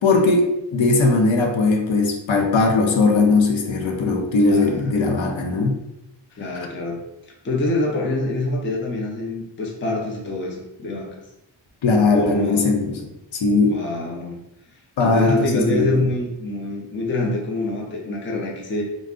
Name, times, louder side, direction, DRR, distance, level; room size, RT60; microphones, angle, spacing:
voice 1, 0.0-5.8 11.8-12.9 13.3-13.8 15.0-16.0, left 3 dB, 75° left, 2 dB, 0.6 m, -19 dB
voice 2, 4.2-4.9 6.4-7.0 7.4-11.2 12.1-12.7 13.7-14.4 15.0-18.8, left 2 dB, 25° left, -1 dB, 0.4 m, -25 dB
2.4 x 2.0 x 3.5 m, 0.88 s
wide cardioid pair, 175°, 47 cm